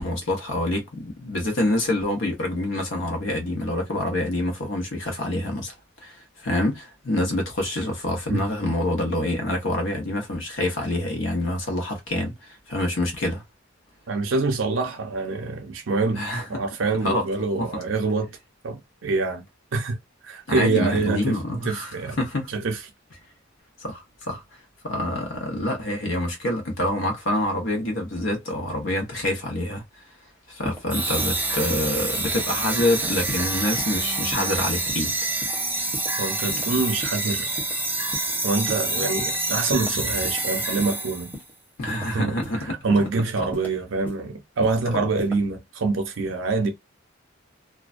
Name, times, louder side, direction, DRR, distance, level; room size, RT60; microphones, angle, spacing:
voice 1, 0.0-5.7 6.0-13.4 16.1-16.5 17.0-17.8 20.5-22.5 23.8-24.4 24.8-29.8 30.5-35.1 36.5-36.6 41.8-42.8 43.4-43.5 44.9-45.0, left 1 dB, 75° left, 1.0 m, -26 dB
voice 2, 14.1-16.2 16.5-18.3 18.6-19.4 19.7-20.0 20.2-21.3 21.7-22.2 22.5-22.8 36.2-37.5 38.4-41.3 42.1-46.7, right 3 dB, 75° right, 0.6 m, -25 dB
sound 1, 30.6-30.8 31.2-31.3 31.7-31.9 32.2-32.4 32.8-32.9 33.3-33.4 33.8-33.9 34.3-34.5 34.9-35.1 35.4-35.6 35.9-36.1 36.5-36.7 37.0-37.2 37.6-37.7 38.1-38.3 38.7-38.8 39.2-39.4 39.7-39.9 40.2-40.4 40.8-40.9 41.3-41.5 41.9-42.0 42.4-42.6 43.0-43.1 43.5-43.7 44.1-44.2 44.6-44.8 45.2-45.4, left 1 dB, 10° left, 0.8 m, -36 dB
sound 2, 30.9-41.4, right 2 dB, 10° right, 0.4 m, -27 dB
2.4 x 2.1 x 2.5 m
head